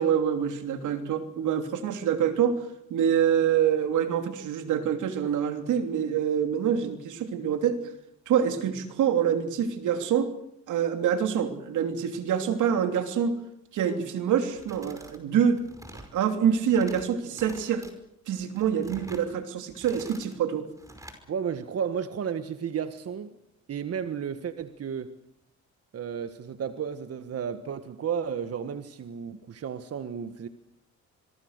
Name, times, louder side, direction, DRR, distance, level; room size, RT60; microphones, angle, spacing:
voice 1, 0.0-7.8 8.3-10.3 10.7-13.4 13.7-15.6 16.1-17.8 18.3-20.7, right 8 dB, 80° right, 7 dB, 3.1 m, -26 dB
sound 1, 14.5-15.2 15.5-16.1 16.6-17.0 17.3-17.9 18.4-19.3 19.7-20.4 20.8-21.2, right 1 dB, 10° right, 5.2 m, -47 dB
voice 2, 21.3-23.3 23.7-25.1 25.9-30.5, right 7 dB, 50° right, 10 dB, 1.5 m, -33 dB
26.5 x 22.5 x 6.7 m, 0.76 s
cardioid pair, 90°, 30 cm